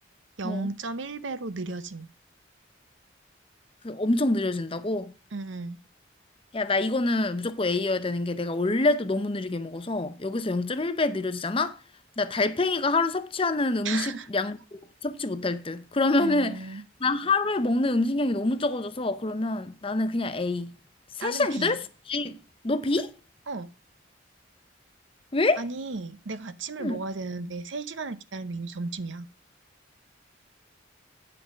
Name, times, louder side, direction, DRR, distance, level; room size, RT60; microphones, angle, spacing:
voice 1, 0.4-2.1 5.3-5.8 13.8-14.3 16.2-16.9 21.2-21.8 23.5-23.7 25.6-29.3, right 3 dB, 70° right, 0.7 m, -34 dB
voice 2, 3.8-5.1 6.5-11.8 12.2-16.6 17.0-20.7 21.2-21.8 22.1-22.4 22.6-23.1 25.3-25.6 26.8-27.0, left 2 dB, 25° left, 0.7 m, -26 dB
9.8 x 5.4 x 5.9 m
head